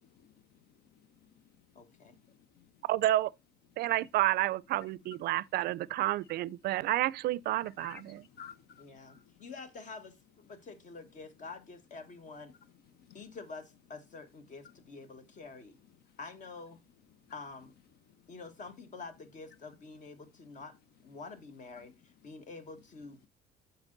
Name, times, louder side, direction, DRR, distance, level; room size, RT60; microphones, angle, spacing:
voice 1, 0.0-2.8 4.8-4.9 7.6-9.4 12.6-13.3 16.1-16.2 17.2-17.4 18.1-18.3 21.8-21.9, left 8 dB, 70° left, 0.9 m, -56 dB
voice 2, 1.7-2.2 8.8-10.2 10.5-12.5 13.1-15.8 16.2-16.8 17.3-17.7 18.3-20.7 21.0-23.3, left 4 dB, 50° left, 1.5 m, -47 dB
voice 3, 2.9-3.3 3.8-8.2, right 15 dB, 70° right, 0.4 m, -30 dB
8.1 x 5.7 x 3.9 m
cardioid pair, 110°, 17 cm